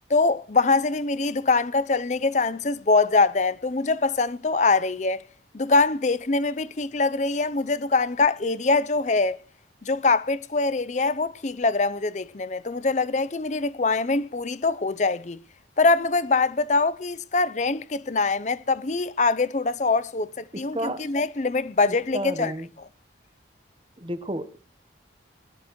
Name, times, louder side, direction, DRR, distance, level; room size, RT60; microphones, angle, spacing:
voice 1, 0.1-5.2 5.5-9.4 9.8-15.4 15.8-22.5, left 3 dB, 40° left, 0.6 m, -23 dB
voice 2, 20.5-21.1 21.9-22.7 24.0-24.6, right 1 dB, 30° right, 1.1 m, -32 dB
21.0 x 13.0 x 3.1 m
head